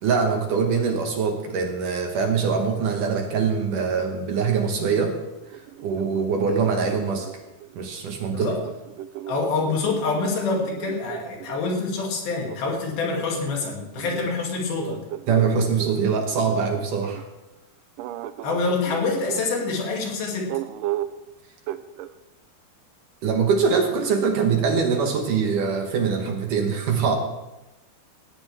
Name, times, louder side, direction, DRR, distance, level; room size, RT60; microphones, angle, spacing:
voice 1, 0.0-5.2 5.8-7.3 7.8-8.5 15.3-17.2 23.2-27.2, right 5 dB, 65° right, 3 dB, 2.4 m, -23 dB
sound 1, 5.4-7.8 8.6-11.6 12.5-17.3 18.0-19.7 20.5-21.2 21.7-22.1, right 13 dB, 90° right, 1.9 m, -36 dB
voice 2, 8.3-8.6 9.3-15.0 18.4-20.5, left 4 dB, 70° left, 0 dB, 4.1 m, -26 dB
17.5 x 16.5 x 3.4 m, 1.0 s
omnidirectional pair, 4.5 m